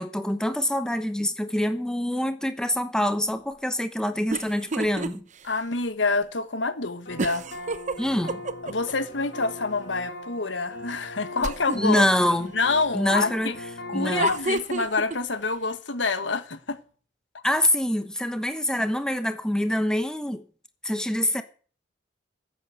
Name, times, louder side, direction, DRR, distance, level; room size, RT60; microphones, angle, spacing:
voice 1, 0.0-5.2 8.0-8.4 11.7-12.5 12.9-13.5 13.9-14.3 17.4-20.4 20.8-21.4, left 1 dB, 5° left, 1.1 m, -25 dB
sound 1, 4.3-5.1 5.5-5.6 7.2-8.9 11.4-12.0 14.0-15.2, right 3 dB, 40° right, 0.8 m, -30 dB
voice 2, 5.4-7.4 8.6-12.0 12.5-13.6 13.9-16.8, left 3 dB, 80° left, 1.5 m, -27 dB
sound 2, 7.1-14.4, left 1 dB, 65° left, 4.4 m, -40 dB
14.5 x 8.5 x 7.8 m
head